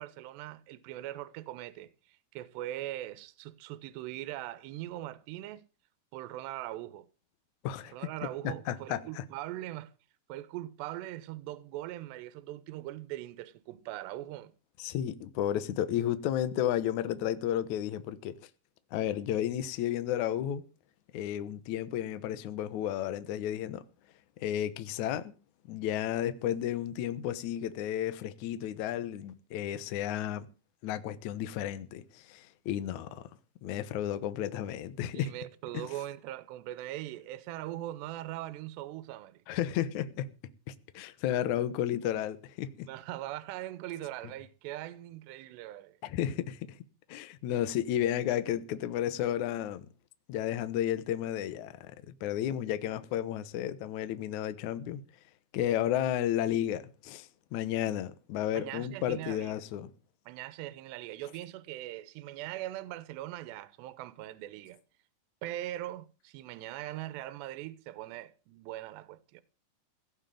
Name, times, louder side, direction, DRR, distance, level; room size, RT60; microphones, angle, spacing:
voice 1, 0.0-5.6 6.1-7.1 7.9-9.9 10.3-14.5 35.1-39.4 42.9-46.0 58.5-59.5 60.3-64.8 65.4-69.4, right 15 dB, 80° right, 2.9 m, -41 dB
voice 2, 7.6-7.9 8.4-9.2 14.8-18.4 18.9-20.6 21.1-23.8 24.4-25.3 25.7-30.5 30.8-33.3 33.6-35.3 35.7-35.9 39.5-40.3 40.7-42.9 46.0-46.8 47.1-49.9 50.3-55.0 55.5-59.9, left 11 dB, 75° left, 1.7 m, -32 dB
17.0 x 6.5 x 9.2 m
omnidirectional pair, 5.0 m